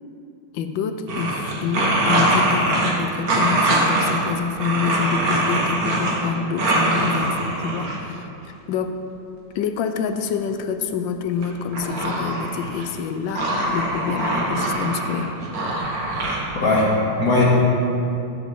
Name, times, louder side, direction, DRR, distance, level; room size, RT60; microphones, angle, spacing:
voice 1, 0.5-9.0 9.5-15.4, left 7 dB, 80° left, 7 dB, 1.3 m, -27 dB
sound 1, 1.1-2.9 3.3-4.2 4.6-6.3 6.6-8.0 11.4-13.0 13.3-16.4, right 2 dB, 50° right, 1.7 m, -22 dB
voice 2, 16.6-17.4, left 2 dB, 50° left, -6 dB, 2.5 m, -19 dB
15.5 x 7.4 x 3.6 m, 2.8 s
omnidirectional pair, 2.1 m